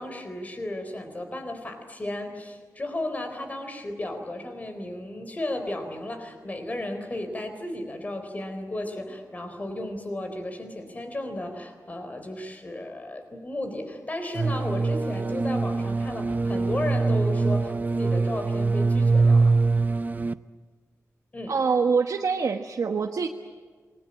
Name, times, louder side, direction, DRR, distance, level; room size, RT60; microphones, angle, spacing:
voice 1, 0.0-19.5 21.3-21.5, left 1 dB, 25° left, 6 dB, 4.0 m, -34 dB
sound 1, 14.4-20.3, right 3 dB, 30° right, 0.7 m, -23 dB
voice 2, 21.5-23.3, right 5 dB, 70° right, 2 dB, 1.4 m, -24 dB
27.5 x 21.0 x 8.9 m, 1.5 s
wide cardioid pair, 180°, 6 cm